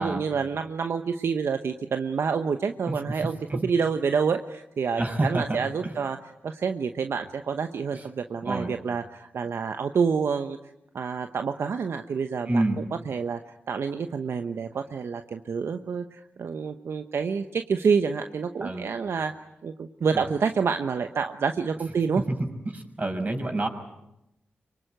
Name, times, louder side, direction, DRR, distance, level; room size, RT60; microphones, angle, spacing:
voice 1, 0.0-6.2 6.4-10.6 10.9-13.4 13.7-19.3 19.6-22.2, right 5 dB, 75° right, 8 dB, 1.0 m, -28 dB
voice 2, 5.0-6.0 7.9-8.1 8.4-8.7 12.4-12.8 18.6-18.9 20.1-20.2 22.6-23.7, right 2 dB, 40° right, 4 dB, 6.2 m, -28 dB
24.5 x 23.5 x 9.1 m, 0.88 s
supercardioid pair, 40°, 4 cm